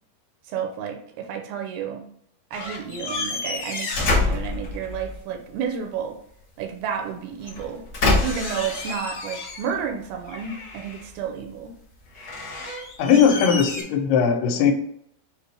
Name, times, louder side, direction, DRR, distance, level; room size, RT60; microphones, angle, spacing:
voice 1, 0.4-2.0 2.5-6.2 6.6-7.8 8.2-11.7, right 7 dB, 80° right, 2 dB, 2.5 m, -31 dB
sound 1, 2.5-5.2 7.4-9.9 10.2-11.1 12.1-13.8, left 3 dB, 50° left, 1.1 m, -28 dB
voice 2, 13.0-14.7, left 7 dB, 85° left, 6 dB, 2.6 m, -19 dB
6.5 x 2.5 x 3.3 m, 0.71 s
omnidirectional pair, 4.6 m